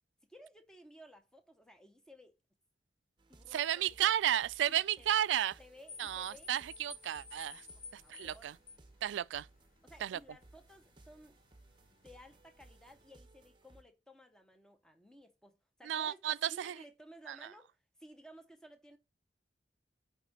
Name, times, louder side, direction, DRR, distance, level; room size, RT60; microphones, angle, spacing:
voice 1, 0.2-2.4 3.3-4.2 4.7-5.2 5.6-6.5 7.7-8.5 9.8-11.4 11.9-19.0, equal, 5° left, 0.8 m, -57 dB
sound 1, 3.2-13.8, right 2 dB, 25° right, 0.8 m, -62 dB
voice 2, 3.5-5.6 6.0-7.7 7.9-8.5 9.0-9.5 10.0-10.2 15.9-16.7 17.3-17.4, right 11 dB, 85° right, 0.3 m, -33 dB
sound 2, 5.9-13.1, left 3 dB, 50° left, 1.3 m, -55 dB
9.0 x 3.6 x 4.2 m
head